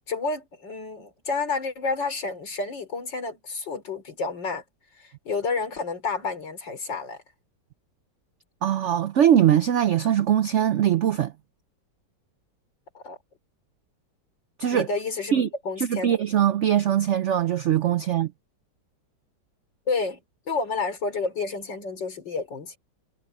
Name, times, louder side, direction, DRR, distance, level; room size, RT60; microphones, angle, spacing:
voice 1, 0.1-4.6 5.0-7.2 12.9-13.2 14.7-15.3 15.6-16.2 19.9-20.2 20.5-22.8, left 4 dB, 85° left, 4.5 m, -30 dB
voice 2, 8.6-11.3 14.6-14.9 15.3-15.5 15.8-18.3, right 10 dB, 80° right, 0.6 m, -21 dB
omnidirectional pair, 1.9 m